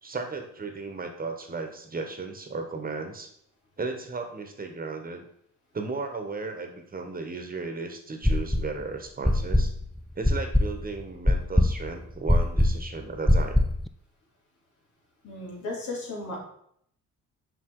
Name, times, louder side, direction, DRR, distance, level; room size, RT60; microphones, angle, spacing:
voice 1, 0.0-3.3 3.8-5.3 5.7-9.7 10.1-13.6, right 4 dB, 30° right, 5 dB, 1.3 m, -35 dB
sound 1, 8.2-8.8 9.2-13.9, left 1 dB, ahead, 0.3 m, -22 dB
voice 2, 15.2-16.4, left 2 dB, 70° left, -3 dB, 3.4 m, -35 dB
6.1 x 5.6 x 4.7 m, 0.68 s
cardioid pair, 90°, 30 cm